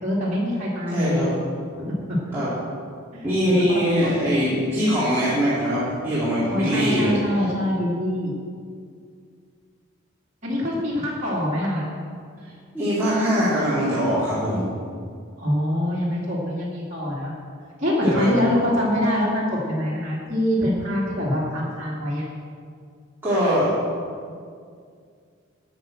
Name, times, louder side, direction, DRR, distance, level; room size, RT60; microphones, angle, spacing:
voice 1, 0.0-1.2 1.8-2.4 3.1-3.7 4.0-4.1 6.5-8.3 10.4-11.9 15.4-17.3 17.8-22.2, equal, 35° right, -8 dB, 2.6 m, -24 dB
voice 2, 0.9-1.3 2.3-2.5 3.2-7.1 12.7-14.7 18.0-18.3 23.2-23.7, equal, 10° right, -12 dB, 2.7 m, -22 dB
11.5 x 7.8 x 6.4 m, 2.2 s
head